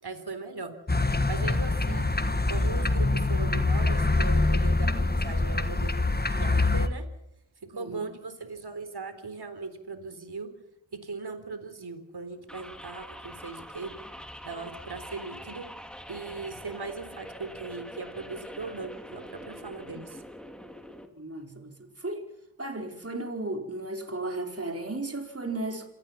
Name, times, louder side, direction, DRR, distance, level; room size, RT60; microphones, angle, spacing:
voice 1, 0.0-0.7 1.3-2.1 2.5-6.1 6.3-7.0 7.7-10.5 10.9-13.9 14.4-15.7 16.1-20.2, right 4 dB, 60° right, 10 dB, 3.9 m, -39 dB
sound 1, 0.9-6.9, left 2 dB, 20° left, 1.5 m, -25 dB
voice 2, 7.7-8.1 21.1-22.2 22.6-25.9, right 2 dB, 30° right, 4 dB, 4.5 m, -35 dB
sound 2, 12.5-21.1, equal, ahead, 2.7 m, -44 dB
27.0 x 18.5 x 7.4 m, 0.82 s
wide cardioid pair, 75°, 45 cm